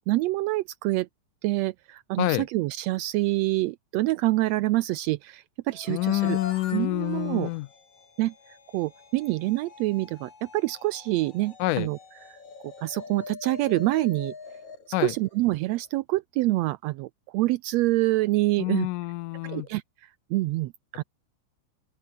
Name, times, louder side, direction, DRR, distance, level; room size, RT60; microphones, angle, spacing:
voice 1, 0.1-1.1 1.4-6.4 6.7-7.5 8.2-12.0 12.3-12.4 12.8-14.3 15.0-18.9 19.4-21.0, right 18 dB, 80° right, 1.6 m, -26 dB
sound 1, 5.7-15.9, left 5 dB, 65° left, 5.8 m, -44 dB
voice 2, 5.9-7.7 11.6-11.9 14.9-15.1 18.6-19.7, left 18 dB, 85° left, 2.3 m, -27 dB
open air
omnidirectional pair, 3.6 m